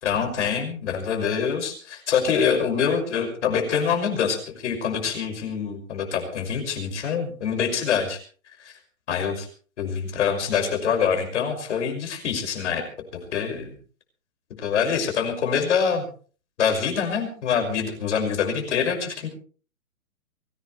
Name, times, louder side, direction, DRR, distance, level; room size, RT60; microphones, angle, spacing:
voice 1, 0.0-8.2 8.6-8.7 9.1-9.5 9.8-12.8 13.3-13.7 14.6-16.1 16.6-19.3, left 7 dB, 50° left, 5 dB, 6.1 m, -25 dB
24.0 x 16.5 x 3.3 m, 0.41 s
hypercardioid pair, 155°, 43 cm